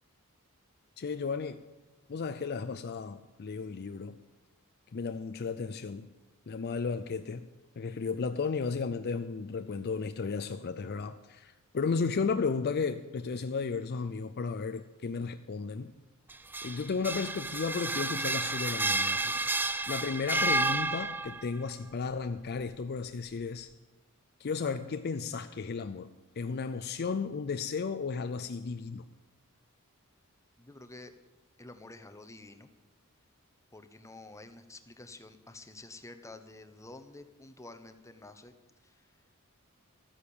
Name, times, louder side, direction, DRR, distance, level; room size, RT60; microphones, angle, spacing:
voice 1, 1.0-1.6 2.1-4.2 4.9-6.1 6.5-7.5 7.8-15.9 16.6-19.4 19.9-23.7 24.4-26.1 26.4-29.0, left 5 dB, 50° left, 9 dB, 0.5 m, -34 dB
sound 1, 16.3-21.5, right 2 dB, 10° right, 0.3 m, -31 dB
voice 2, 30.6-31.1 31.6-32.7 33.7-38.5 38.8-39.1, left 2 dB, 15° left, 8 dB, 0.9 m, -49 dB
13.0 x 9.6 x 7.0 m, 1.1 s
head